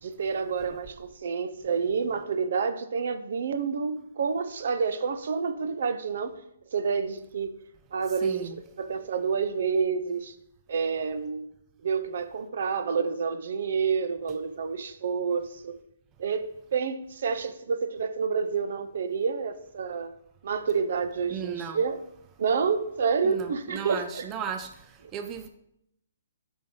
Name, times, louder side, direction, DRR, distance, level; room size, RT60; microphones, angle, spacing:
voice 1, 0.0-6.3 6.7-7.6 7.9-8.5 8.8-10.3 10.7-11.4 11.8-15.8 16.2-20.1 20.4-22.0 22.4-24.2, right 5 dB, 60° right, 0.6 m, -28 dB
voice 2, 8.1-8.6 21.3-21.8 23.2-24.7 25.1-25.5, right 7 dB, 20° right, 0.4 m, -36 dB
7.7 x 5.3 x 3.8 m
hypercardioid pair, 150°, 0 cm